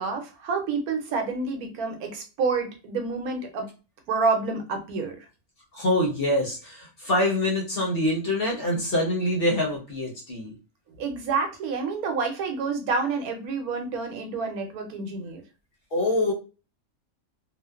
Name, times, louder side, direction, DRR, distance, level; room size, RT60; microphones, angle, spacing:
voice 1, 0.0-3.7 4.1-5.3 11.0-15.4, right 4 dB, 85° right, 4 dB, 1.1 m, -28 dB
voice 2, 5.7-10.5 15.9-16.3, left 1 dB, 50° left, -2 dB, 0.8 m, -25 dB
2.8 x 2.1 x 2.3 m, 0.32 s
omnidirectional pair, 1.5 m